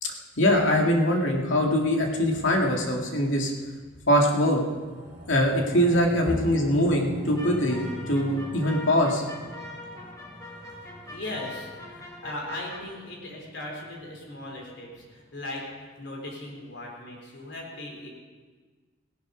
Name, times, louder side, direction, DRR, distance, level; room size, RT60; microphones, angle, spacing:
voice 1, 0.0-3.5 4.1-4.6 5.3-9.2, equal, 90° left, 0 dB, 2.2 m, -23 dB
sound 1, 4.4-15.0 15.4-15.5, equal, 30° right, 2.6 m, -44 dB
sound 2, 7.4-12.8, left 2 dB, 20° left, 2.2 m, -43 dB
voice 2, 11.1-18.1, left 1 dB, 65° left, -1 dB, 3.8 m, -38 dB
17.0 x 11.5 x 5.1 m, 1.4 s
head